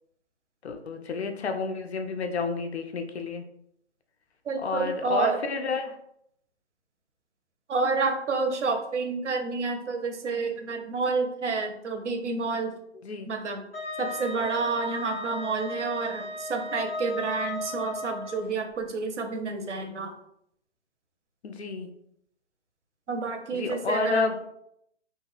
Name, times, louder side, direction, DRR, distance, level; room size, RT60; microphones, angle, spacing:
voice 1, 0.6-3.4 4.6-5.9 13.0-13.3 21.4-21.9 23.5-24.4, left 4 dB, 65° left, 6 dB, 0.5 m, -30 dB
voice 2, 4.5-5.4 7.7-12.7 13.3-13.6 14.0-20.1 23.1-24.3, right 4 dB, 75° right, 4 dB, 0.7 m, -29 dB
Wind instrument woodwind instrument, 13.7-18.4, left 1 dB, 10° left, 0.8 m, -36 dB
2.4 x 2.2 x 3.3 m, 0.74 s
figure-of-eight pair, 145°, 36 cm